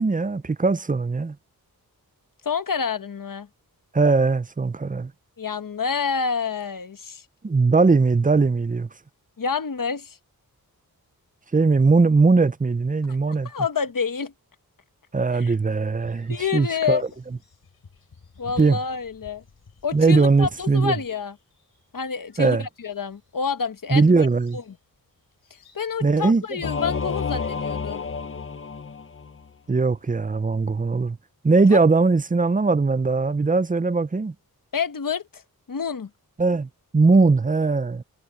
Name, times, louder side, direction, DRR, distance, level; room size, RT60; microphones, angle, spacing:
voice 1, 0.0-1.4 3.9-5.1 7.4-8.9 11.5-13.5 15.1-17.0 18.6-18.8 19.9-21.0 22.4-22.7 23.9-24.6 26.0-26.6 29.7-31.2 31.4-34.3 36.4-38.0, right 4 dB, 20° right, 0.6 m, -20 dB
voice 2, 2.4-3.5 5.4-7.2 9.4-10.2 13.4-14.3 15.3-15.5 16.3-17.0 18.4-19.4 19.8-21.3 21.9-24.3 24.5-24.6 25.7-28.1 31.7-31.8 34.7-35.4 35.7-36.1, left 6 dB, 60° left, 1.2 m, -28 dB
sound 1, 16.0-27.3, left 5 dB, 75° left, 4.3 m, -51 dB
Singing / Musical instrument, 26.6-29.5, left 5 dB, 35° left, 0.7 m, -30 dB
wide cardioid pair, 85°, 37 cm